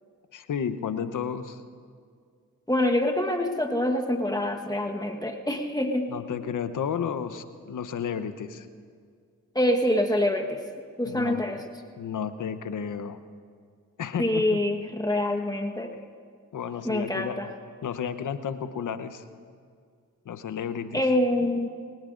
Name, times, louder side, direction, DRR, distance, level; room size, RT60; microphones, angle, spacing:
voice 1, 0.3-1.6 6.1-8.7 11.0-11.4 12.0-13.2 14.0-14.6 16.5-17.4 17.8-19.2 20.2-21.1, left 7 dB, 65° left, 11 dB, 0.9 m, -32 dB
voice 2, 2.7-6.1 9.5-10.6 11.0-11.6 14.2-15.9 16.8-17.5 20.9-21.7, left 1 dB, 10° left, 3 dB, 1.3 m, -25 dB
22.0 x 19.0 x 2.6 m, 2.1 s
supercardioid pair, 45°, 33 cm